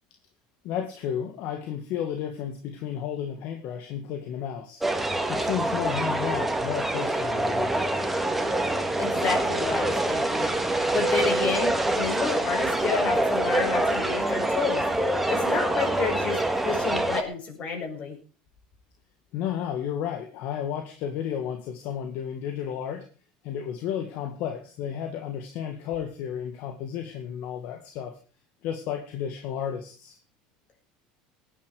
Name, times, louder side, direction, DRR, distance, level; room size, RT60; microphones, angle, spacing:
voice 1, 0.6-4.8 5.3-7.7 19.3-23.0 23.4-28.2 28.6-30.2, left 9 dB, 65° left, 6 dB, 2.0 m, -32 dB
sound 1, 4.8-17.2, right 1 dB, 5° right, 2.2 m, -25 dB
voice 2, 9.0-10.5 10.9-14.8 15.3-18.1, left 5 dB, 40° left, 2 dB, 6.6 m, -30 dB
18.0 x 10.0 x 5.0 m, 0.38 s
supercardioid pair, 115°, 3 cm